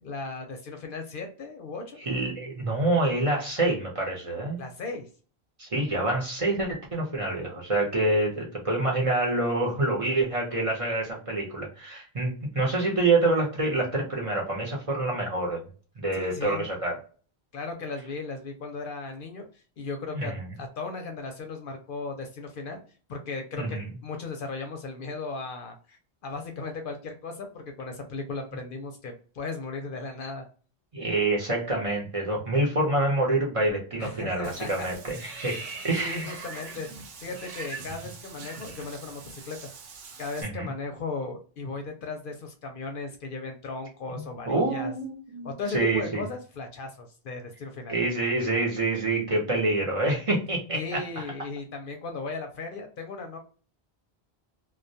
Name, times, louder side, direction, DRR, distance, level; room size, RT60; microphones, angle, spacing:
voice 1, 0.0-2.0 4.6-5.1 16.1-16.7 17.5-22.8 23.1-30.4 34.0-34.9 35.2-35.7 36.0-36.9 37.2-39.7 40.2-44.9 45.4-47.9 50.7-53.4, left 3 dB, 60° left, 4 dB, 0.7 m, -36 dB
voice 2, 2.0-4.6 5.6-15.6 16.0-17.0 20.1-20.4 23.6-23.8 30.9-35.5 35.8-36.3 40.4-40.7 44.1-46.2 47.9-51.2, right 2 dB, 40° right, -2 dB, 0.7 m, -27 dB
Water / Bathtub (filling or washing), 34.4-40.4, right 4 dB, 70° right, 0.8 m, -42 dB
2.2 x 2.1 x 2.6 m, 0.38 s
omnidirectional pair, 1.1 m